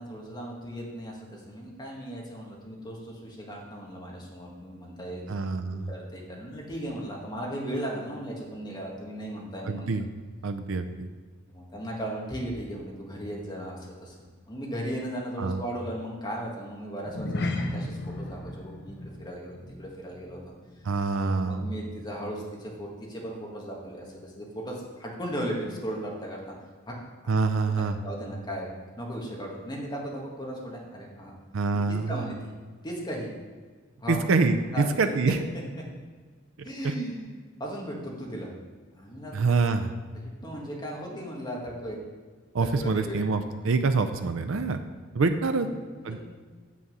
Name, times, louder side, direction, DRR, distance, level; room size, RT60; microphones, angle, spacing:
voice 1, 0.0-5.2 5.6-9.9 11.5-20.4 21.1-26.4 26.9-27.0 28.0-28.7 29.0-31.3 31.9-32.5 32.8-33.3 34.0-34.2 34.7-34.9 35.3-35.6 36.6-37.3 37.6-38.5 39.0-39.5 40.1-42.0 42.6-43.2 45.4-46.2, equal, 20° left, -2 dB, 1.7 m, -36 dB
voice 2, 5.3-5.9 9.7-10.1 10.4-11.1 15.4-15.6 20.8-21.6 27.3-28.0 31.5-32.2 34.1-35.4 36.6-36.7 39.3-39.9 42.5-44.8 45.1-45.7 46.0-46.2, right 4 dB, 75° right, 8 dB, 0.5 m, -26 dB
sound 1, 17.0-21.7 21.9-22.2 22.7-22.8, left 2 dB, 55° left, 0.7 m, -35 dB
7.2 x 6.2 x 5.5 m, 1.5 s
head